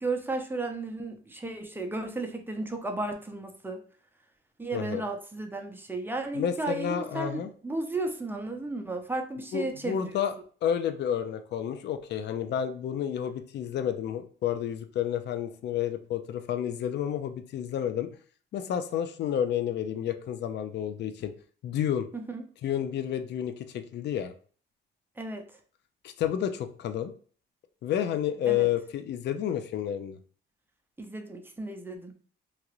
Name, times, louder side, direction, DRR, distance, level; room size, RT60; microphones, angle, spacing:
voice 1, 0.0-3.8 4.6-10.1 22.1-22.4 25.2-25.5 28.5-28.7 31.0-32.1, right 2 dB, 10° right, 4 dB, 0.6 m, -34 dB
voice 2, 6.3-7.5 9.5-10.3 10.6-18.1 18.5-21.3 21.6-22.1 22.6-24.3 26.0-27.1 27.8-30.2, left 9 dB, 60° left, 9 dB, 0.4 m, -30 dB
2.9 x 2.5 x 2.9 m, 0.44 s
cardioid pair, 90°, 20 cm